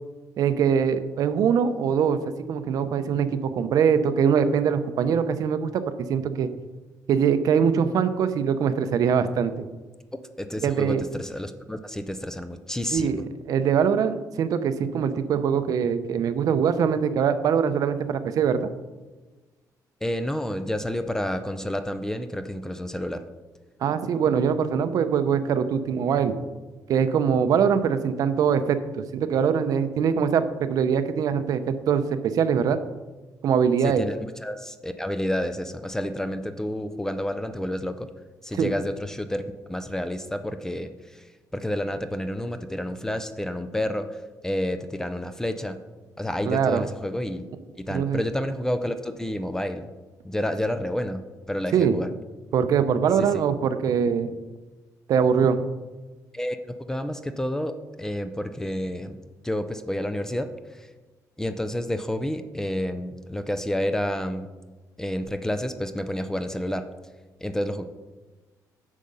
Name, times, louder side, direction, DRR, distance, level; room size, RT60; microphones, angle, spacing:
voice 1, 0.4-2.2 2.5-5.8 6.1-6.5 7.1-9.6 10.6-11.0 12.9-13.2 13.5-18.7 23.8-26.3 26.9-32.8 33.4-34.0 38.6-38.7 46.5-46.8 47.9-48.2 51.7-52.0 52.5-54.3 55.1-55.6, right 7 dB, 60° right, 11 dB, 0.6 m, -23 dB
voice 2, 10.4-13.2 20.0-23.2 33.8-34.1 34.4-38.1 38.4-41.2 41.5-45.8 46.2-47.5 47.8-49.9 50.2-52.1 53.2-53.4 56.3-59.2 59.4-60.9 61.4-64.5 65.0-66.9 67.4-67.8, left 1 dB, 5° left, 9 dB, 0.4 m, -30 dB
8.5 x 6.4 x 5.4 m, 1.2 s
cardioid pair, 165°, 7 cm